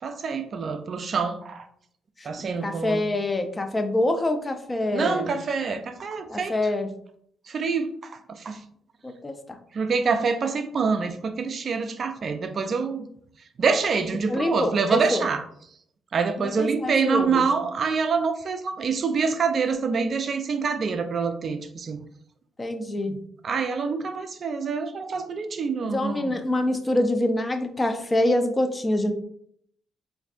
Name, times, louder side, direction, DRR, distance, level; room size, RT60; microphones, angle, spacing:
voice 1, 0.0-1.6 2.2-3.0 4.9-6.5 7.5-8.6 9.7-13.1 13.6-15.4 16.1-22.0 23.0-23.2 23.4-26.3, right 5 dB, 50° right, 8 dB, 0.4 m, -26 dB
voice 2, 2.6-5.3 6.3-6.9 9.0-9.6 14.3-15.3 16.4-17.5 22.6-23.2 25.8-29.1, left 1 dB, 20° left, 6 dB, 0.5 m, -26 dB
4.4 x 2.5 x 2.4 m, 0.66 s
cardioid pair, 90°, 0 cm